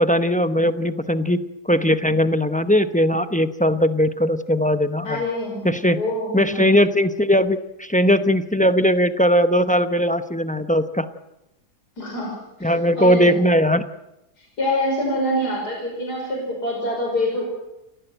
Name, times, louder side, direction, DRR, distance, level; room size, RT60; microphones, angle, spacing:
voice 1, 0.0-5.2 5.6-6.0 6.3-11.1 12.6-13.8, equal, 10° left, 10 dB, 0.4 m, -19 dB
voice 2, 5.0-6.7 12.0-13.4 14.4-17.4, left 1 dB, 70° left, 0 dB, 6.2 m, -26 dB
29.5 x 15.0 x 8.0 m, 0.90 s
omnidirectional pair, 1.8 m